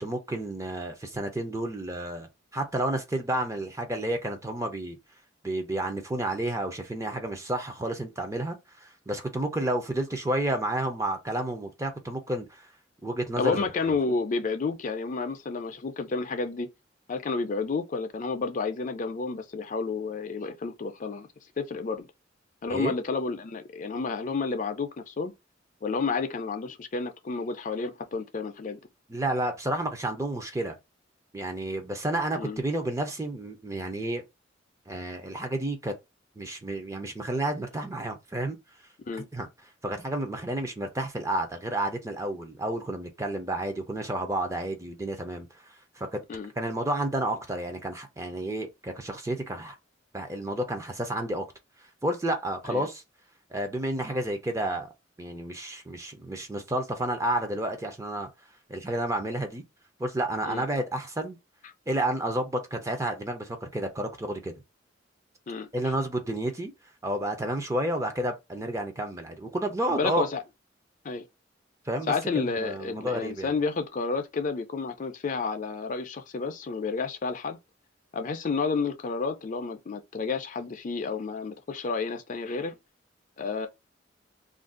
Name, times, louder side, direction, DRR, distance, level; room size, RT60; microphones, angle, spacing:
voice 1, 0.0-5.0 5.4-12.7 13.0-13.6 22.7-23.0 29.1-30.8 31.3-34.2 34.9-35.9 36.4-38.6 39.3-39.5 39.8-45.5 46.0-46.2 46.6-49.8 50.1-51.5 52.0-53.0 53.5-54.9 55.2-58.3 58.7-59.6 60.0-61.4 61.9-64.5 65.7-66.7 67.0-70.3 71.9-73.5, right 1 dB, 15° right, 0.5 m, -30 dB
voice 2, 13.4-16.7 17.1-21.3 21.6-22.1 22.6-25.3 25.8-28.8 32.4-32.6 39.1-39.3 46.3-46.5 52.7-52.9 60.5-60.6 65.5-65.9 69.9-70.4 71.0-71.2 72.1-77.6 78.1-82.8 83.4-83.7, left 4 dB, 40° left, 0.4 m, -31 dB
2.5 x 2.3 x 3.7 m
head